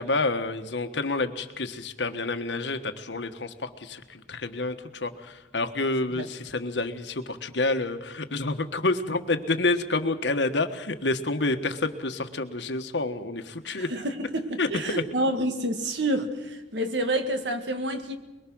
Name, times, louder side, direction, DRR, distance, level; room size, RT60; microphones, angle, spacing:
voice 1, 0.0-13.9 14.6-14.7, left 2 dB, 80° left, 1.4 m, -28 dB
voice 2, 13.7-18.2, right 1 dB, 80° right, 1.9 m, -28 dB
22.5 x 22.0 x 6.3 m
head